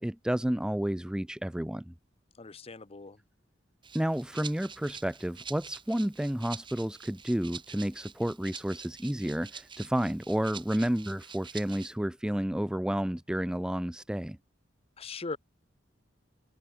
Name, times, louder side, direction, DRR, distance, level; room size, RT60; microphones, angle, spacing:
voice 1, 0.0-1.9 3.9-14.4, equal, 5° right, 0.4 m, -31 dB
voice 2, 2.4-3.2 15.0-15.4, left 3 dB, 30° left, 0.8 m, -40 dB
Rattle (instrument), 3.8-11.9, right 6 dB, 25° right, 2.8 m, -47 dB
open air
head